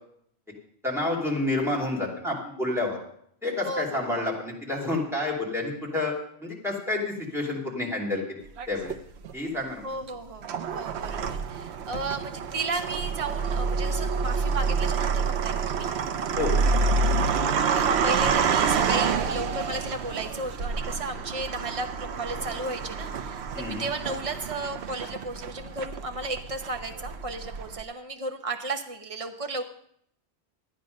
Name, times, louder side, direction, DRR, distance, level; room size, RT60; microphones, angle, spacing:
voice 1, 0.8-3.0 3.4-6.1 6.4-8.4 8.7-8.9 9.3-9.9 16.3-16.6 23.5-23.9, left 2 dB, ahead, -3 dB, 2.8 m, -29 dB
voice 2, 3.6-4.3 9.8-15.9 17.3-29.6, right 2 dB, 35° right, 5 dB, 1.1 m, -34 dB
sound 1, 8.6-9.3 10.0-27.8, right 5 dB, 85° right, 0.9 m, -28 dB
13.0 x 9.3 x 5.2 m, 0.68 s
omnidirectional pair, 1.1 m